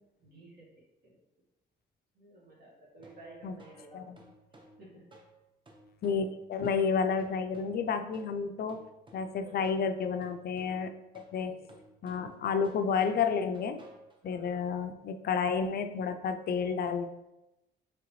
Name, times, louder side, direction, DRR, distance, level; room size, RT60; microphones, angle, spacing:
voice 1, 0.2-0.7 1.0-1.2 2.1-4.0 4.8-5.1 9.4-9.7 11.3-11.7 14.2-14.6, right 2 dB, 55° right, -5 dB, 1.4 m, -53 dB
sound 1, 3.0-14.5, right 1 dB, 25° right, 0.7 m, -58 dB
voice 2, 6.0-8.9 9.1-11.6 12.0-13.8 14.2-17.1, left 6 dB, 50° left, 9 dB, 0.4 m, -31 dB
3.8 x 3.3 x 3.0 m, 0.93 s
cardioid pair, 90°, 20 cm